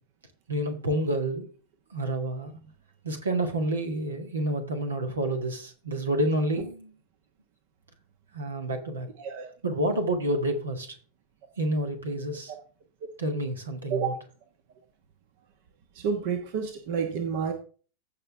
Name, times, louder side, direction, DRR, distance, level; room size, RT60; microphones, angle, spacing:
voice 1, 0.5-1.5 1.9-2.5 3.0-6.9 8.3-9.1 9.6-11.0 11.6-12.5 13.2-14.1, right 1 dB, 70° right, 5 dB, 1.8 m, -29 dB
voice 2, 15.9-17.5, right 6 dB, 50° right, 6 dB, 1.2 m, -29 dB
15.5 x 5.5 x 3.4 m, 0.39 s
figure-of-eight pair, 90°, 0 cm